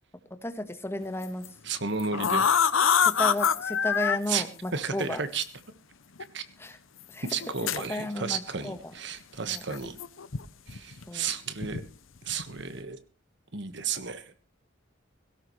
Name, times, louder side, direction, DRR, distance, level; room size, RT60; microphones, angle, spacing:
voice 1, 0.3-1.5 3.0-5.2 6.6-6.8 7.1-7.3 7.8-8.8 9.5-9.6 11.1-11.3, left 1 dB, 10° left, 8 dB, 1.3 m, -33 dB
sound 1, 1.2-1.5 2.0-4.2 5.4-5.5 6.2-6.3 7.3-7.9 9.7-10.4 10.7-11.0 11.6-11.8 12.2-12.6, left 7 dB, 80° left, 0.8 m, -25 dB
voice 2, 1.6-2.5 4.3-4.4 4.7-5.4 6.3-6.4 7.3-10.0 10.7-11.8 12.2-13.0 13.5-14.3, right 5 dB, 60° right, 10 dB, 1.5 m, -33 dB
18.0 x 17.0 x 3.2 m, 0.33 s
head